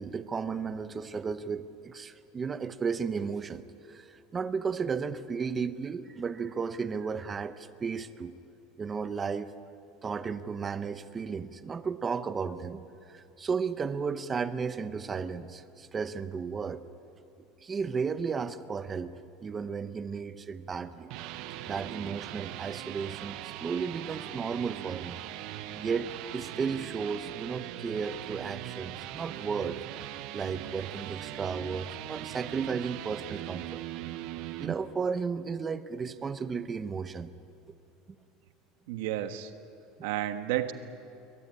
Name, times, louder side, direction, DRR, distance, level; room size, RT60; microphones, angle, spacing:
voice 1, 0.0-8.3 8.8-9.5 10.0-16.8 17.6-19.1 19.4-21.1 21.6-25.2 25.7-29.8 30.3-33.8 34.6-37.3 38.1-38.2, right 5 dB, 15° right, 12 dB, 0.7 m, -34 dB
sound 1, 20.8-34.8, right 14 dB, 50° right, 0.8 m, -40 dB
voice 2, 38.9-39.5 40.0-40.7, right 13 dB, 70° right, 9 dB, 1.4 m, -31 dB
22.5 x 18.0 x 9.7 m, 2.6 s
cardioid pair, 180°, 0 cm